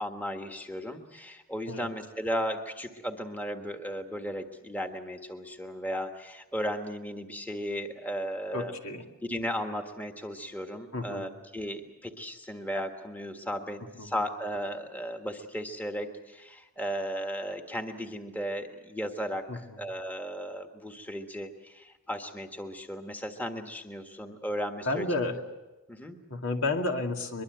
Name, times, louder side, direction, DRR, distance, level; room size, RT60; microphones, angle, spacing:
voice 1, 0.0-8.8 9.2-19.5 19.8-25.1 25.9-26.2, equal, 10° left, 4 dB, 1.5 m, -35 dB
voice 2, 8.5-9.0 10.9-11.3 14.0-14.2 19.5-19.6 24.9-25.4 26.3-27.4, left 2 dB, 75° left, 3 dB, 2.3 m, -31 dB
23.0 x 22.5 x 7.9 m, 1.1 s
head